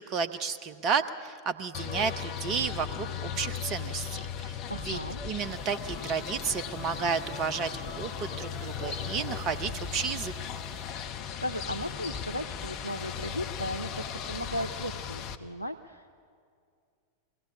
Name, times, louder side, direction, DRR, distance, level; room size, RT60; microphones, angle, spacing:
voice 1, 0.0-4.6 4.8-5.0 5.2-7.7 8.0-10.3, right 6 dB, 35° right, 11 dB, 0.7 m, -32 dB
sound 1, 1.7-15.4, left 8 dB, 40° left, 0.9 m, -37 dB
voice 2, 4.7-5.2 11.4-16.1, equal, 90° right, 8 dB, 0.5 m, -36 dB
sound 2, 5.4-10.9, left 1 dB, ahead, 2.8 m, -49 dB
22.5 x 17.5 x 8.3 m, 2.3 s
figure-of-eight pair, 90°, 0 cm